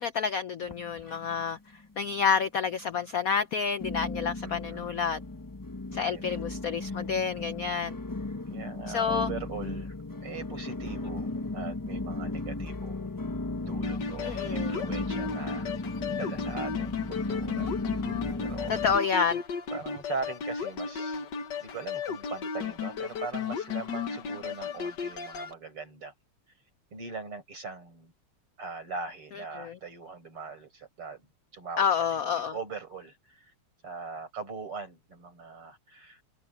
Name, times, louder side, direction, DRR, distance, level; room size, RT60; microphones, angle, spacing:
voice 1, 0.0-1.6 2.0-5.2 5.9-8.0 8.9-9.3 14.2-14.7 18.7-19.4 29.6-29.7 31.8-32.5, left 6 dB, 75° left, 0.8 m, -29 dB
sound 1, 0.6-1.6 1.8-2.5 3.0-3.1 3.8-19.0, left 2 dB, 25° left, 0.4 m, -35 dB
voice 2, 4.4-4.9 5.9-6.3 8.5-9.9 10.2-11.3 11.5-13.2 13.6-15.7 16.1-17.7 18.4-18.8 19.7-21.3 21.6-26.1 26.9-28.1 28.6-31.3 31.5-33.5 33.8-36.2, right 4 dB, 80° right, 7.2 m, -41 dB
sound 2, 13.8-25.5, left 6 dB, 55° left, 1.8 m, -35 dB
omnidirectional pair, 2.4 m